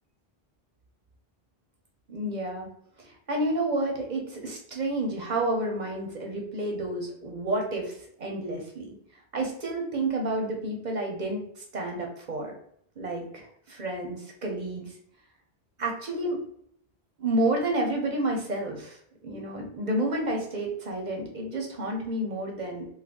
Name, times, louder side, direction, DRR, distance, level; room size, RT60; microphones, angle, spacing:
voice 1, 2.1-2.7 3.0-9.0 9.3-12.6 13.0-15.0 15.8-16.4 17.2-22.9, right 1 dB, 50° right, 1 dB, 0.7 m, -30 dB
2.5 x 2.3 x 3.5 m, 0.69 s
omnidirectional pair, 1.0 m